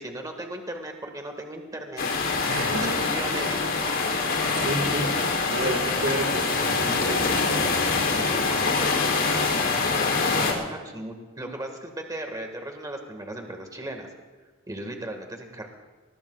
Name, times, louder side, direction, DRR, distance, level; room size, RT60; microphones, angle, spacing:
voice 1, 0.0-2.0 2.7-3.6 10.2-14.1 14.7-15.7, right 1 dB, 20° right, 4 dB, 1.7 m, -36 dB
sound 1, 2.0-10.5, left 4 dB, 65° left, 2.9 m, -24 dB
voice 2, 2.5-3.0 3.3-8.7, right 1 dB, 65° right, 2 dB, 1.8 m, -33 dB
22.0 x 20.0 x 2.4 m, 1.4 s
head